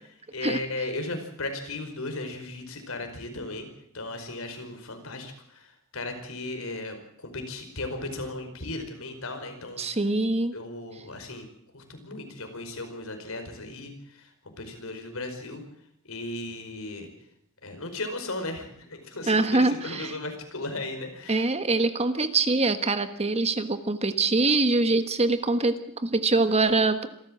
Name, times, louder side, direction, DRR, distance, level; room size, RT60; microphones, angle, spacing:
voice 1, 0.3-3.7 3.9-9.9 10.5-11.5 11.7-15.6 16.1-17.1 17.6-21.5, left 2 dB, 85° left, 6 dB, 5.0 m, -36 dB
voice 2, 9.8-10.6 19.3-20.2 21.3-27.1, right 3 dB, 30° right, 10 dB, 1.4 m, -24 dB
26.5 x 14.0 x 7.7 m, 0.72 s
head